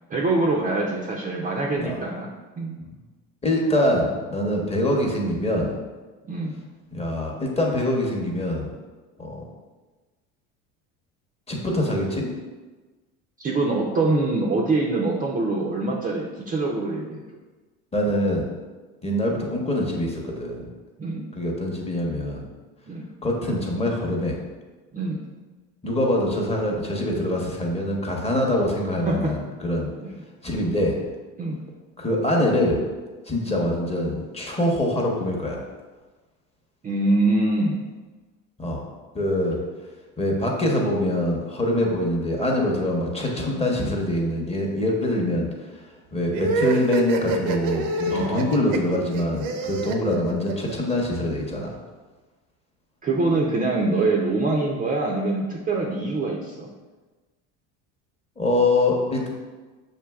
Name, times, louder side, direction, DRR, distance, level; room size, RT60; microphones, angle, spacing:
voice 1, 0.1-2.3 2.6-2.8 6.3-6.6 13.4-17.2 21.0-21.3 22.9-23.1 24.9-25.2 29.1-29.3 30.0-30.1 31.4-31.6 36.8-37.8 48.1-48.6 53.0-56.7, right 2 dB, 20° right, -2 dB, 0.4 m, -24 dB
voice 2, 3.4-5.8 6.9-8.7 9.2-9.4 11.5-12.3 17.9-18.5 19.0-20.6 21.3-22.5 23.2-24.4 25.8-29.9 30.4-31.0 32.0-32.8 33.3-35.6 38.6-38.8 39.1-39.6 40.2-45.8 46.1-51.8 58.4-59.3, left 1 dB, 15° left, -1 dB, 0.8 m, -24 dB
sound 1, 46.3-51.0, right 3 dB, 85° right, 0.6 m, -26 dB
6.7 x 2.7 x 2.3 m, 1.3 s
supercardioid pair, 100°, 39 cm